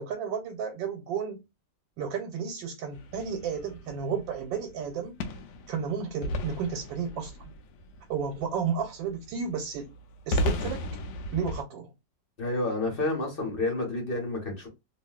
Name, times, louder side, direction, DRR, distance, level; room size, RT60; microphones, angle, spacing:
voice 1, 0.0-1.4 2.0-5.2 5.7-7.3 8.1-9.9 10.3-10.9 11.3-11.9, right 6 dB, 85° right, 1.4 m, -32 dB
sound 1, 2.9-11.6, left 1 dB, 75° left, 1.0 m, -35 dB
voice 2, 12.4-14.7, left 2 dB, 35° left, 1.1 m, -29 dB
3.0 x 2.7 x 2.3 m
omnidirectional pair, 2.0 m